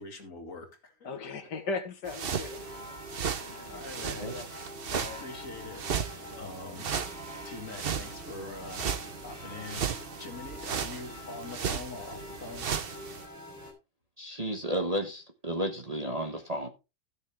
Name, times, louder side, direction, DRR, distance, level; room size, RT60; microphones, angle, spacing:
voice 1, 0.0-1.1 2.4-2.5 3.2-4.3 5.2-5.8 6.4-6.9 7.4-8.9 9.2-9.8 10.2-12.7, left 3 dB, 50° left, 2.4 m, -43 dB
voice 2, 1.0-2.7 3.5-4.5 4.8-5.2 6.3-6.5, left 4 dB, 80° left, 2.1 m, -38 dB
sound 1, 2.0-13.3, right 7 dB, 45° right, 0.8 m, -36 dB
sound 2, 2.2-13.7, left 1 dB, 10° right, 3.7 m, -46 dB
voice 3, 14.2-16.7, right 1 dB, 25° right, 1.0 m, -32 dB
15.0 x 6.5 x 3.5 m
omnidirectional pair, 1.8 m